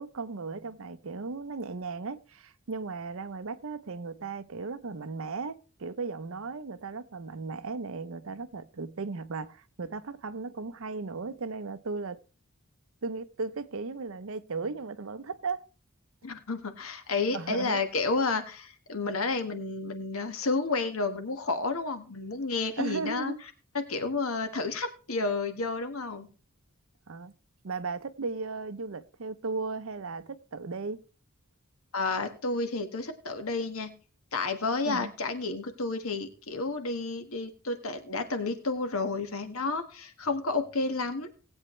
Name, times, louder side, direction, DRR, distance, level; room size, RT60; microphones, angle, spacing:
voice 1, 0.0-12.2 13.0-15.6 17.3-17.8 22.8-23.4 27.1-27.3 27.6-31.0 34.8-35.1, right 4 dB, 65° right, 0.7 m, -36 dB
voice 2, 16.2-23.3 23.7-26.3 31.9-33.9 34.3-41.3, left 3 dB, 75° left, 1.5 m, -31 dB
19.0 x 8.1 x 3.1 m
head